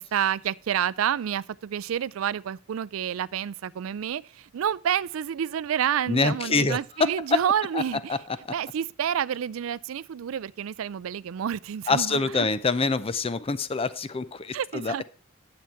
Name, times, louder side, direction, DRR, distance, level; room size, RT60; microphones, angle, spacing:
voice 1, 0.0-8.2 8.5-12.5 14.5-15.0, right 9 dB, 70° right, 0.4 m, -29 dB
voice 2, 6.1-7.4 8.1-8.2 11.9-14.9, left 4 dB, 30° left, 0.5 m, -25 dB
10.5 x 7.1 x 4.5 m
head